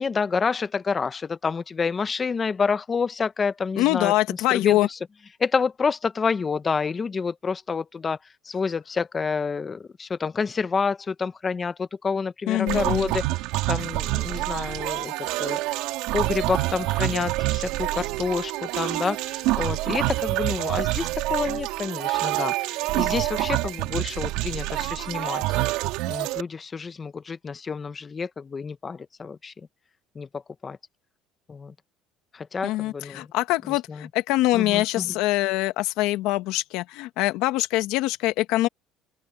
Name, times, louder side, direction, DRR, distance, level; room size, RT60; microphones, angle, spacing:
voice 1, 0.0-5.0 5.4-8.2 8.5-13.2 13.7-15.6 16.1-25.4 26.1-29.5 30.1-30.8 31.5-31.7 32.3-33.3 33.9-34.1 34.5-35.1, left 5 dB, 25° left, 1.1 m, -28 dB
voice 2, 3.8-4.9 12.5-13.1 32.6-38.7, left 17 dB, 80° left, 1.6 m, -24 dB
sound 1, 12.7-26.4, right 19 dB, 80° right, 3.5 m, -27 dB
open air
cardioid pair, 120°, 0 cm